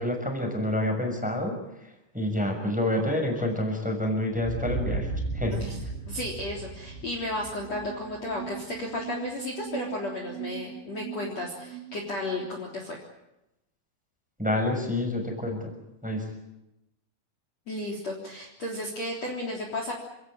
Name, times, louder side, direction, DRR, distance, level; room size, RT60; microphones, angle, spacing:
voice 1, 0.0-1.6 2.1-5.1 5.3-5.6 14.4-15.7 16.0-16.3, left 1 dB, ahead, 3 dB, 5.7 m, -28 dB
sound 1, 4.4-9.0, right 3 dB, 60° right, 5.6 m, -35 dB
voice 2, 6.1-13.0 17.7-19.9, left 1 dB, 35° left, 1 dB, 4.1 m, -33 dB
sound 2, 6.9-12.6, right 13 dB, 85° right, 5.8 m, -41 dB
29.0 x 17.5 x 8.8 m, 0.91 s
omnidirectional pair, 5.6 m